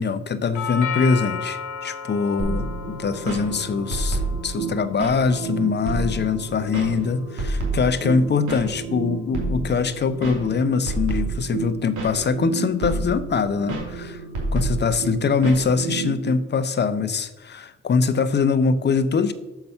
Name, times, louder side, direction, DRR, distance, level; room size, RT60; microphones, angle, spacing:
voice 1, 0.0-14.2 14.5-19.3, left 5 dB, 35° left, 12 dB, 0.7 m, -23 dB
Doorbell, 0.5-8.6, left 7 dB, 75° left, 1.2 m, -36 dB
sound 1, 2.4-16.3, right 3 dB, 80° right, 2.8 m, -29 dB
6.7 x 5.8 x 5.5 m, 1.1 s
cardioid pair, 90°, 30 cm